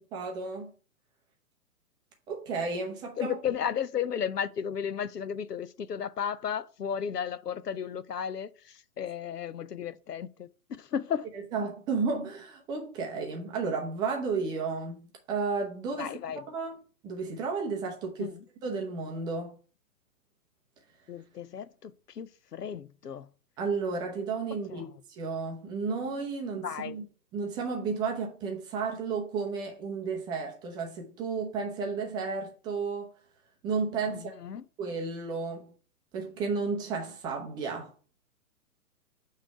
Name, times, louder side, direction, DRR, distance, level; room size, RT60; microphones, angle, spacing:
voice 1, 0.1-0.7 2.3-3.4 11.5-16.1 16.5-16.8 17.0-18.3 18.6-19.6 23.6-27.0 27.3-33.1 33.6-34.3 34.8-35.7 36.1-37.9, right 4 dB, 10° right, 0.5 m, -32 dB
voice 2, 3.2-10.5 10.8-11.3 16.0-16.4 18.2-18.4 21.1-23.3 24.7-24.9 26.6-27.0 34.1-34.6, left 8 dB, 90° left, 0.6 m, -34 dB
6.8 x 3.2 x 5.6 m
figure-of-eight pair, 120°, 46 cm